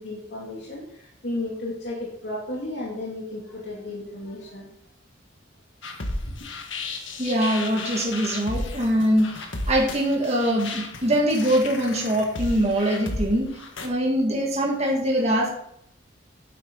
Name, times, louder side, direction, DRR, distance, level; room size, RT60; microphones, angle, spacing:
voice 1, 0.0-4.7, left 2 dB, 65° left, -5 dB, 2.6 m, -33 dB
sound 1, 5.8-13.9, left 2 dB, 80° left, 1.6 m, -34 dB
voice 2, 7.2-9.4 9.7-13.5 13.8-15.5, equal, 35° right, -1 dB, 1.9 m, -23 dB
10.5 x 8.4 x 3.9 m, 0.74 s
head